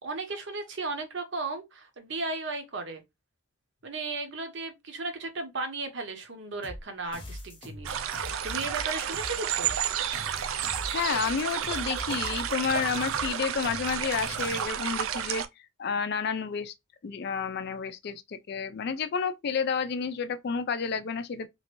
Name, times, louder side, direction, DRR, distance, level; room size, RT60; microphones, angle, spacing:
voice 1, 0.0-3.0 3.8-9.8, right 3 dB, 60° right, 0.8 m, -35 dB
sound 1, 6.6-14.6, left 1 dB, 25° left, 0.8 m, -43 dB
sound 2, 7.8-15.5, right 9 dB, 75° right, 0.4 m, -31 dB
voice 2, 10.9-15.4 15.8-16.7 17.0-21.5, left 6 dB, 50° left, 0.4 m, -30 dB
3.0 x 2.5 x 2.9 m
head